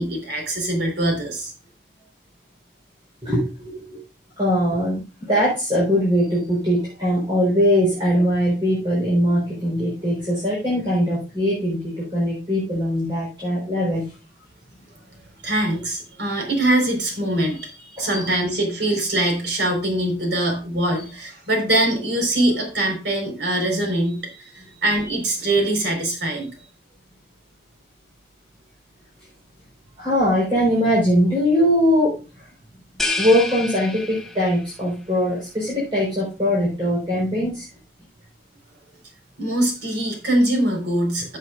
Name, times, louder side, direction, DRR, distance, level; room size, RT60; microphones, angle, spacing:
voice 1, 0.0-1.5 15.4-26.7 39.4-41.4, right 1 dB, 90° right, 2 dB, 4.5 m, -23 dB
voice 2, 3.2-4.0 4.4-14.1 18.0-18.4 30.0-32.1 33.2-37.7, equal, 25° right, -6 dB, 4.2 m, -21 dB
sound 1, 33.0-34.7, left 3 dB, ahead, 0.9 m, -28 dB
15.5 x 7.6 x 2.5 m, 0.32 s
head